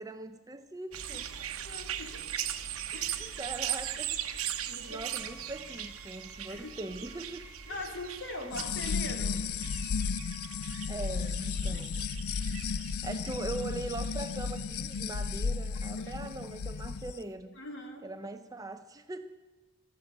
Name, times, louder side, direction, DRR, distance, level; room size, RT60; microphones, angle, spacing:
voice 1, 0.0-1.3 3.2-4.2 4.9-7.4 7.7-8.0 10.9-12.0 13.0-17.6 18.0-19.4, right 2 dB, 15° right, 9 dB, 0.5 m, -41 dB
sound 1, 0.9-15.4 16.1-16.2, right 10 dB, 80° right, 1.0 m, -40 dB
voice 2, 1.6-2.3 2.9-3.4 4.7-5.1 6.5-6.7 7.7-9.4 11.7-11.9 12.2-13.0 15.8-16.6 17.6-18.1, left 2 dB, 55° left, 3 dB, 2.3 m, -43 dB
Wind instrument woodwind instrument, 4.8-11.2, right 2 dB, 50° right, 4.1 m, -56 dB
sound 2, 8.5-17.1, left 5 dB, 80° left, 0.5 m, -34 dB
13.5 x 12.0 x 7.8 m, 1.2 s
head